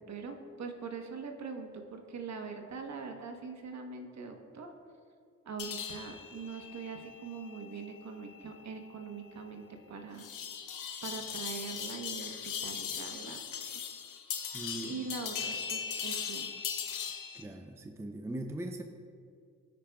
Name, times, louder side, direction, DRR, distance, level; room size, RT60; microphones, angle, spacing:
voice 1, 0.1-4.7 5.4-10.3 11.0-13.4 13.7-13.8 14.3-14.4 14.8-16.5, right 5 dB, 55° right, 4 dB, 1.0 m, -42 dB
sound 1, 5.6-17.4, left 7 dB, 75° left, 0.8 m, -40 dB
voice 2, 14.5-15.0 17.3-18.8, right 1 dB, 10° right, 5 dB, 0.5 m, -40 dB
14.5 x 5.2 x 2.3 m, 2.2 s
cardioid pair, 65°, 32 cm